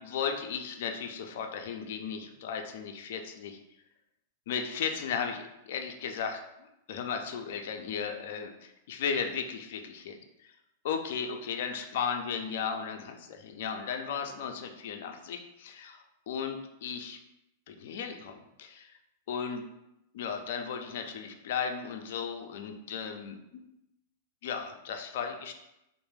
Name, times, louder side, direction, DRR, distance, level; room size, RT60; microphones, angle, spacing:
voice 1, 0.0-3.6 4.5-10.5 10.8-17.2 17.7-18.9 19.3-19.6 20.1-23.4 24.4-25.5, left 6 dB, 65° left, 5 dB, 0.3 m, -35 dB
2.3 x 2.0 x 3.1 m, 0.88 s
hypercardioid pair, 110°, 0 cm